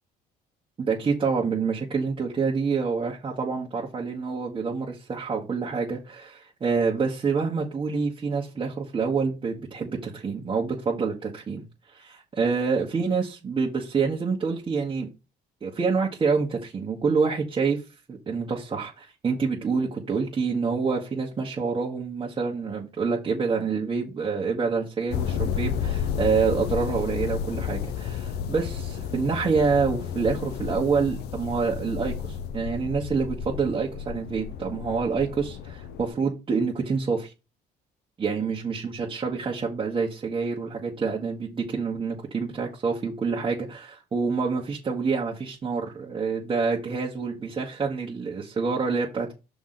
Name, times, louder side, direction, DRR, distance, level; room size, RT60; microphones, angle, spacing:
voice 1, 0.8-11.6 11.9-15.1 15.6-17.8 18.1-37.3 38.2-49.3, right 5 dB, 30° right, 1.4 m, -27 dB
sound 1, 25.1-36.1, left 8 dB, 75° left, 0.7 m, -32 dB
6.0 x 3.9 x 5.8 m
cardioid pair, 110°, 17 cm